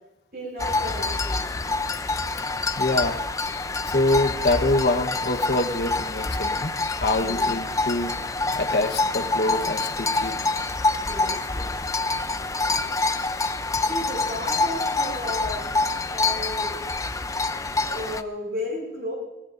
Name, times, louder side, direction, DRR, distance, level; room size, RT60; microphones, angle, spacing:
voice 1, 0.3-1.4 7.2-7.5 11.0-11.7 13.9-15.7 16.1-16.7 17.9-19.2, left 1 dB, 60° right, 0 dB, 7.1 m, -34 dB
sound 1, 0.6-18.2, left 3 dB, 20° left, 0.5 m, -26 dB
voice 2, 2.8-3.2 3.8-8.2 8.5-10.3, left 2 dB, 70° left, 6 dB, 1.2 m, -25 dB
24.0 x 16.5 x 2.7 m, 0.92 s
head